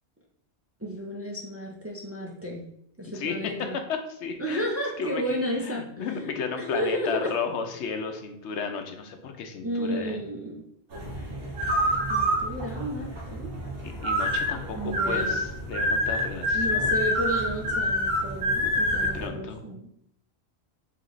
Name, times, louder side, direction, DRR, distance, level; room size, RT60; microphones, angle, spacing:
voice 1, 0.8-2.6 3.0-3.8 4.4-6.1 6.6-7.3 9.6-10.6 12.1-13.5 14.8-15.4 16.5-19.9, equal, 15° right, -2 dB, 0.5 m, -32 dB
voice 2, 4.1-4.7 5.0-5.2 5.6-10.2 13.8-17.0 18.6-19.6, left 5 dB, 85° left, 5 dB, 0.9 m, -34 dB
sound 1, 10.9-19.3, equal, 60° right, 1.2 m, -27 dB
3.7 x 3.1 x 3.8 m, 0.70 s
omnidirectional pair, 1.1 m